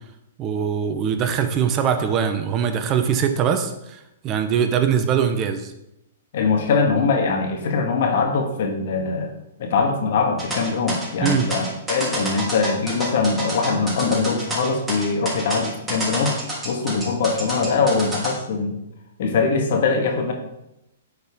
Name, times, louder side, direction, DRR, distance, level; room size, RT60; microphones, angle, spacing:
voice 1, 0.4-5.7 11.2-11.5, right 7 dB, 30° right, 8 dB, 0.7 m, -22 dB
voice 2, 6.3-16.3 16.6-18.8 19.2-20.3, left 4 dB, 60° left, 3 dB, 1.6 m, -22 dB
sound 1, 10.4-18.3, right 1 dB, 15° right, 3.0 m, -29 dB
9.7 x 4.4 x 3.6 m, 0.87 s
hypercardioid pair, 125°, 0 cm